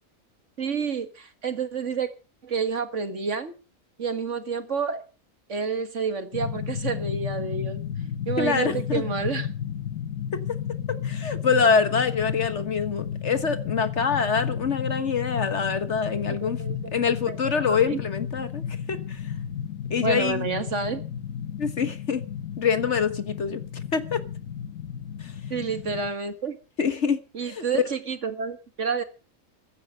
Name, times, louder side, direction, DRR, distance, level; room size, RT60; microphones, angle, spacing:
voice 1, 0.6-2.1 2.4-3.5 4.0-5.0 5.5-7.8 8.3-9.5 16.4-16.8 17.3-18.0 20.0-21.0 25.5-26.6 27.3-29.0, right 5 dB, 55° right, 2.0 m, -29 dB
sound 1, 6.3-26.1, left 8 dB, 70° left, 1.5 m, -33 dB
voice 2, 8.4-9.0 10.3-10.4 10.9-16.6 16.9-18.6 18.9-19.2 19.9-20.4 21.6-22.2 22.6-23.6 23.9-24.2 25.2-25.3 26.8-27.8, left 5 dB, 55° left, 1.6 m, -25 dB
15.5 x 11.5 x 6.4 m
omnidirectional pair, 1.5 m